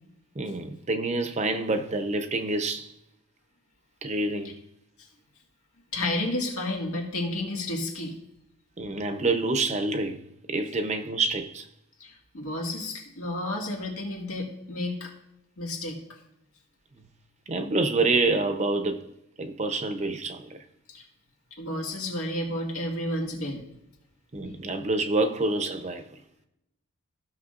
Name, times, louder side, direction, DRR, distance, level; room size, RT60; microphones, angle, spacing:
voice 1, 0.4-2.9 4.0-4.6 8.8-10.2 10.5-11.7 17.5-19.1 19.4-20.6 24.3-26.2, right 2 dB, 30° right, 0.6 m, -27 dB
voice 2, 5.9-8.1 12.0-15.1 15.6-16.0 20.9-21.1 21.6-23.6, left 1 dB, 85° left, 2.0 m, -31 dB
15.0 x 6.0 x 2.5 m
head